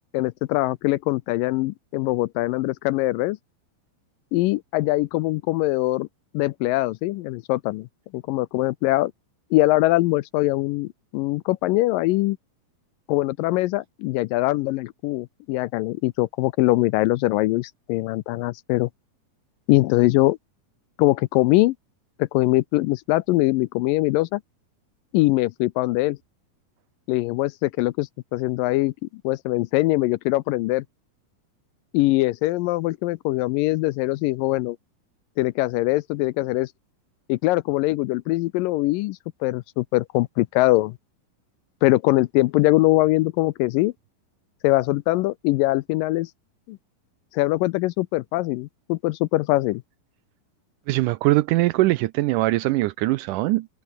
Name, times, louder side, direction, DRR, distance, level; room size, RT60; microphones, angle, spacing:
voice 1, 0.1-3.4 4.3-6.1 6.3-7.9 8.1-9.1 9.5-12.4 13.1-18.9 19.7-20.4 21.0-21.8 22.2-24.4 25.1-26.2 27.1-28.9 29.2-30.8 31.9-34.8 35.4-36.7 37.3-41.0 41.8-43.9 44.6-46.3 46.7-46.8 47.3-49.8, left 19 dB, 80° left, 2.1 m, -22 dB
voice 2, 50.9-53.7, right 18 dB, 85° right, 1.8 m, -21 dB
omnidirectional pair, 4.3 m